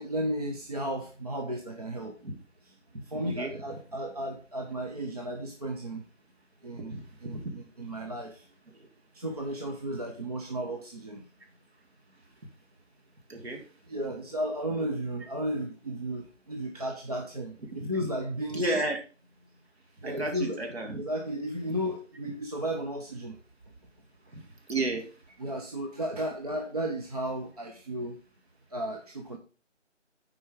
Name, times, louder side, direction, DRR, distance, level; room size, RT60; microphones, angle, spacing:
voice 1, 0.0-2.2 2.6-2.8 3.0-6.0 6.6-8.5 9.1-11.3 13.8-18.9 20.0-20.6 20.9-23.4 25.4-28.2 28.7-29.4, right 1 dB, 30° right, 1 dB, 0.8 m, -34 dB
voice 2, 13.3-13.6 17.8-17.9 18.5-19.0 20.0-21.0 24.3-24.4 24.7-25.1, right 2 dB, 55° right, 4 dB, 2.2 m, -32 dB
8.6 x 4.8 x 5.0 m, 0.35 s
figure-of-eight pair, 160°, 37 cm